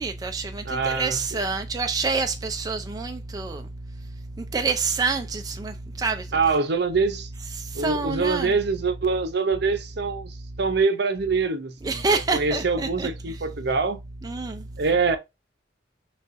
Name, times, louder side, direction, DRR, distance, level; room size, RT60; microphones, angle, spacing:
voice 1, 0.0-3.6 4.5-6.3 7.6-8.6 11.8-13.4 14.2-14.6, right 4 dB, 20° right, 0.4 m, -27 dB
voice 2, 0.6-1.2 6.3-7.3 7.7-12.0 12.3-14.0 14.8-15.2, right 4 dB, 65° right, 0.7 m, -24 dB
6.3 x 2.4 x 2.5 m
head